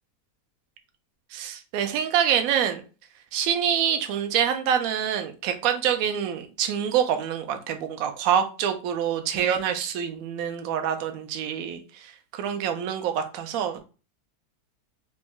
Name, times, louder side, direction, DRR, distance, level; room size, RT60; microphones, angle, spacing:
voice 1, 1.3-2.8 3.3-13.8, right 8 dB, 70° right, 7 dB, 0.9 m, -26 dB
3.0 x 2.9 x 3.5 m, 0.34 s
omnidirectional pair, 1.8 m